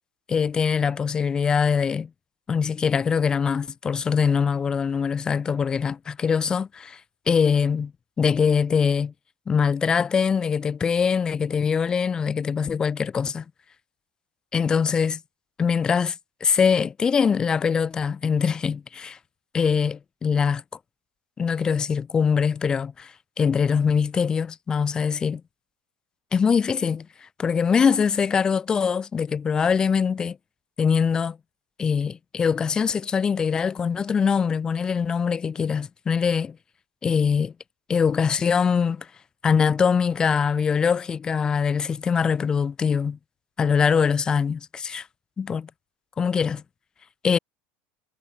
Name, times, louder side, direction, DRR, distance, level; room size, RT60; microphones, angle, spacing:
voice 1, 0.3-2.1 2.5-7.0 7.3-7.9 8.2-9.1 9.5-13.4 14.5-15.2 15.6-16.2 16.4-19.2 19.5-20.6 21.4-23.1 23.4-25.4 26.3-27.1 27.4-30.4 30.8-31.4 31.8-36.6 37.0-37.5 37.9-39.1 39.4-43.2 43.6-45.1 45.4-45.7 46.2-46.6 47.2-47.4, left 6 dB, 15° left, 0.5 m, -23 dB
cardioid pair, 180°, 5 cm